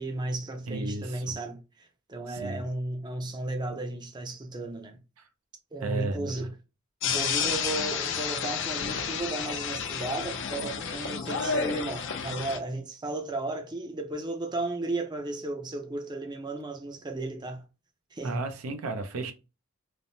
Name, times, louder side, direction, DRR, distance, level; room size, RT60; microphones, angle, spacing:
voice 1, 0.0-5.0 5.7-6.5 7.0-17.6 18.1-18.4, right 2 dB, 20° right, 0.5 m, -34 dB
voice 2, 0.7-1.3 2.3-2.6 5.2-5.3 5.8-6.5 18.2-19.3, right 3 dB, 80° right, 0.5 m, -34 dB
sound 1, 7.0-12.6, left 6 dB, 60° left, 0.5 m, -31 dB
3.2 x 2.0 x 2.6 m
head